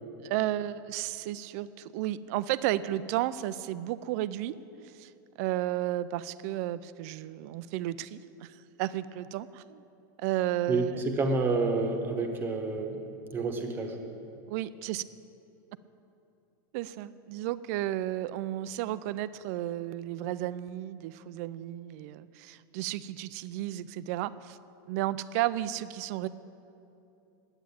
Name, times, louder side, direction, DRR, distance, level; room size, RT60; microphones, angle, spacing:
voice 1, 0.2-4.5 4.8-5.1 5.4-9.8 10.2-11.0 14.5-15.0 16.7-24.6 24.9-26.3, right 14 dB, 45° right, 15 dB, 0.4 m, -33 dB
voice 2, 10.7-14.0, right 3 dB, 20° right, 4 dB, 1.1 m, -29 dB
10.5 x 8.9 x 8.6 m, 2.8 s
supercardioid pair, 160°, 11 cm